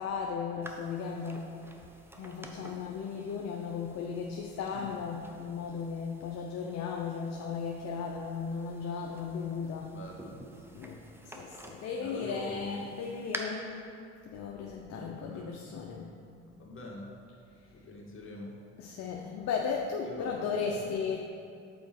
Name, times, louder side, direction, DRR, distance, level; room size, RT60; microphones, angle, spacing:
voice 1, 0.0-1.5 2.2-10.0 10.7-13.9 14.3-16.2 18.8-21.2, left 5 dB, 55° left, 0 dB, 0.7 m, -36 dB
sound 1, 0.6-13.4, right 1 dB, 5° right, 0.7 m, -50 dB
voice 2, 9.9-10.4 12.0-12.9 14.9-15.5 16.6-17.1 17.7-18.5 20.0-20.8, left 1 dB, 40° left, -2 dB, 1.6 m, -43 dB
5.2 x 4.8 x 5.9 m, 2.5 s
supercardioid pair, 75°, 32 cm